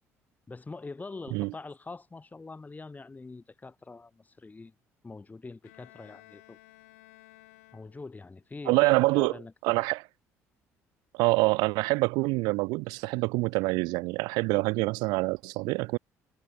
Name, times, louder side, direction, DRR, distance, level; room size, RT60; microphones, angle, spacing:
voice 1, 0.5-4.7 5.0-6.6 7.7-9.9, left 3 dB, 20° left, 2.3 m, -44 dB
Bowed string instrument, 5.6-8.4, left 19 dB, 70° left, 6.0 m, -56 dB
voice 2, 8.7-9.3 9.6-10.0 11.1-16.0, right 25 dB, 60° right, 0.5 m, -26 dB
figure-of-eight pair, 50°, 8 cm